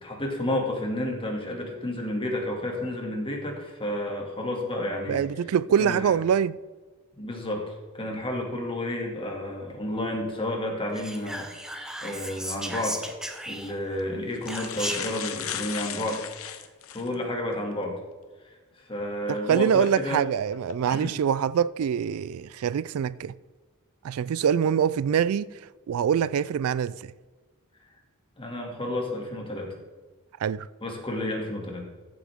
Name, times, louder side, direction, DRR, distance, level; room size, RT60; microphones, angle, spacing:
voice 1, 0.0-5.2 5.8-6.1 7.2-13.1 13.4-16.2 16.5-16.7 16.9-17.9 18.4-18.6 18.9-20.2 20.9-21.1 28.4-29.7 30.8-31.8, left 1 dB, 25° left, 2.3 m, -31 dB
voice 2, 5.1-6.6 19.3-23.3 24.0-25.5 25.9-27.1 30.4-30.7, right 8 dB, 70° right, 0.3 m, -24 dB
Whispering, 10.9-13.9 14.5-15.2, right 1 dB, 5° right, 1.0 m, -35 dB
sound 1, 13.0-13.2 14.0-14.1 14.3-17.1 17.7-17.8 19.7-19.9 20.5-20.7, left 9 dB, 70° left, 1.0 m, -36 dB
14.5 x 7.8 x 3.6 m
head